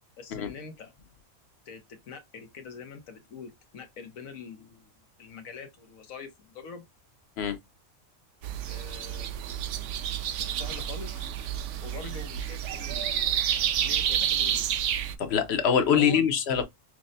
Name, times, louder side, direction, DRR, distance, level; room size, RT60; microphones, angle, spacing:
voice 1, 0.2-0.9 1.7-4.9 5.2-6.9 8.7-9.3 10.4-11.3 11.8-13.1 13.5-14.6 15.8-16.2, left 6 dB, 85° left, 1.3 m, -44 dB
sound 1, 8.4-15.2, right 10 dB, 70° right, 0.8 m, -29 dB
voice 2, 15.2-16.6, left 7 dB, 60° left, 0.9 m, -24 dB
5.9 x 2.1 x 2.6 m
omnidirectional pair, 1.4 m